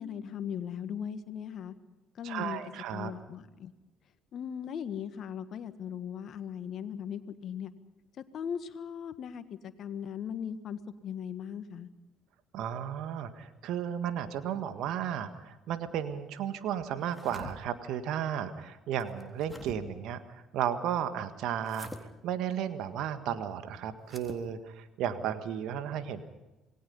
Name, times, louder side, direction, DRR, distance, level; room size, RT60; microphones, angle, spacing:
voice 1, 0.0-1.7 2.2-2.6 2.9-3.7 4.3-7.7 8.2-11.9, left 8 dB, 60° left, 11 dB, 1.6 m, -38 dB
voice 2, 2.2-3.1 12.5-21.9 22.2-26.2, right 9 dB, 70° right, 10 dB, 1.7 m, -34 dB
sound 1, 17.0-17.5 19.0-19.8 21.6-22.0 24.0-24.4, left 1 dB, 5° left, 3.5 m, -46 dB
27.5 x 20.0 x 5.5 m, 1.1 s
hypercardioid pair, 55°, 0 cm